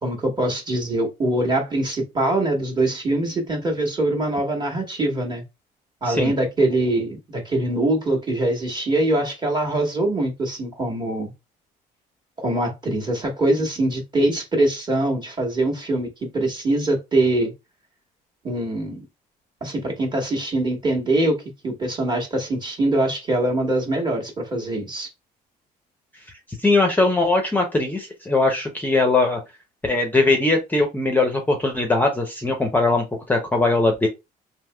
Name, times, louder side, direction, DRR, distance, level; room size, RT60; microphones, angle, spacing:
voice 1, 0.0-5.4 6.0-11.3 12.4-17.5 18.4-19.0 19.6-21.4 21.6-25.1, right 1 dB, 25° right, 1.2 m, -23 dB
voice 2, 26.6-29.4 29.8-34.1, left 2 dB, 10° left, 0.6 m, -20 dB
3.4 x 2.8 x 2.2 m
cardioid pair, 110°, 17 cm